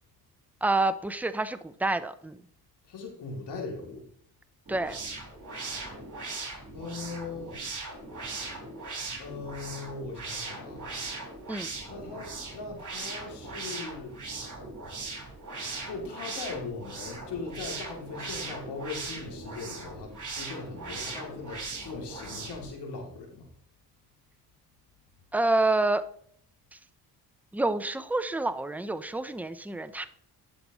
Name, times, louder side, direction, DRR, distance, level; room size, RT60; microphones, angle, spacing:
voice 1, 0.6-2.4 4.7-5.0 11.5-11.7 25.3-26.0 27.5-30.1, right 2 dB, 5° right, 11 dB, 0.7 m, -28 dB
voice 2, 2.9-4.1 6.4-7.6 9.2-10.9 11.9-14.2 15.9-23.5, left 4 dB, 80° left, 0 dB, 3.0 m, -39 dB
sound 1, 4.7-22.7, right 3 dB, 45° right, 4.5 m, -39 dB
11.5 x 6.9 x 3.1 m, 0.63 s
cardioid pair, 75°, 40 cm